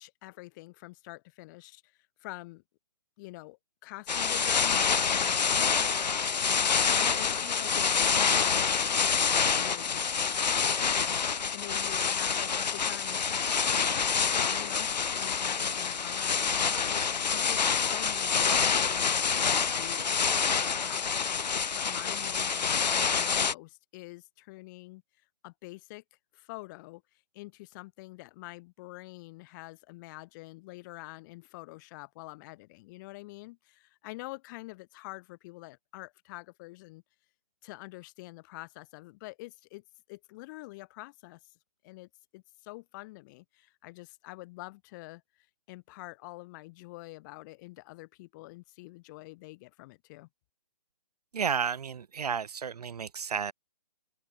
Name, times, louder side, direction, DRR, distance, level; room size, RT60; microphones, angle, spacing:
voice 1, 0.0-2.6 3.2-25.0 25.4-26.0 26.3-37.0 37.6-41.5 41.8-50.3, left 22 dB, 30° left, 4.1 m, -47 dB
sound 1, 4.1-23.5, left 6 dB, 85° left, 0.5 m, -27 dB
voice 2, 51.3-53.5, right 7 dB, 65° right, 0.6 m, -32 dB
open air
figure-of-eight pair, 140°, 21 cm